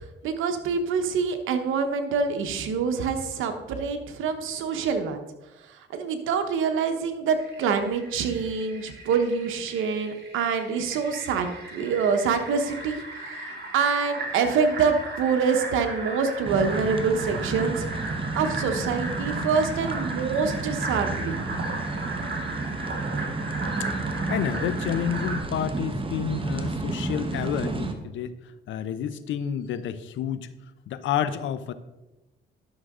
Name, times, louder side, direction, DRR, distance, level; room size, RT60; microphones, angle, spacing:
voice 1, 0.0-5.2 5.9-13.0 13.3-17.9 18.1-21.4, right 5 dB, 85° right, 7 dB, 1.1 m, -26 dB
Fill (with liquid), 7.4-25.4, right 2 dB, 55° right, 2.4 m, -36 dB
sound 1, 16.4-27.9, right 3 dB, 25° right, 1.1 m, -31 dB
voice 2, 24.0-28.4 28.7-30.5 30.9-31.7, left 9 dB, 75° left, 13 dB, 0.7 m, -29 dB
11.5 x 6.4 x 3.7 m, 1.0 s
cardioid pair, 90°, 20 cm